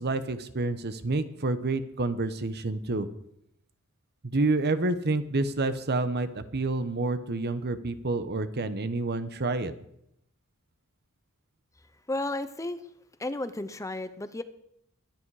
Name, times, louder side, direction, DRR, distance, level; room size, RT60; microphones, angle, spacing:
voice 1, 0.0-3.1 4.2-9.7, right 2 dB, 50° right, 11 dB, 1.0 m, -28 dB
voice 2, 11.8-12.9 13.2-14.4, left 2 dB, 15° left, 11 dB, 0.7 m, -33 dB
21.5 x 10.0 x 4.8 m, 0.76 s
head